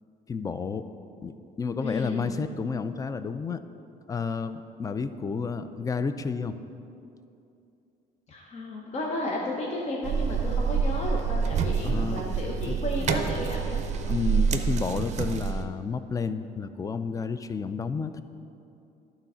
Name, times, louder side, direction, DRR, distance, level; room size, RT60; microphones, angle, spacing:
voice 1, 0.3-0.9 1.2-3.6 4.1-6.5 11.8-12.2 12.7-12.8 14.1-18.2, left 5 dB, 20° left, 12 dB, 0.3 m, -31 dB
voice 2, 1.8-2.3 8.3-13.8, left 2 dB, 40° left, -2 dB, 1.0 m, -33 dB
sound 1, 10.0-15.6, right 6 dB, 45° right, 0.6 m, -27 dB
11.5 x 4.0 x 5.6 m, 2.7 s
cardioid pair, 110°, 17 cm